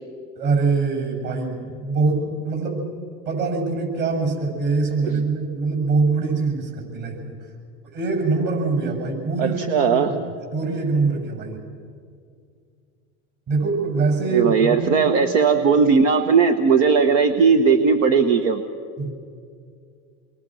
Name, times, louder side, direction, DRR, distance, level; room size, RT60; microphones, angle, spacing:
voice 1, 0.3-2.8 3.2-7.3 7.9-10.2 10.5-11.6 13.5-15.1 19.0-19.1, right 4 dB, 50° right, 2 dB, 7.7 m, -23 dB
voice 2, 9.4-10.1 14.3-18.6, right 5 dB, 80° right, 7 dB, 1.3 m, -18 dB
28.5 x 22.5 x 6.4 m, 2.3 s
supercardioid pair, 100°, 38 cm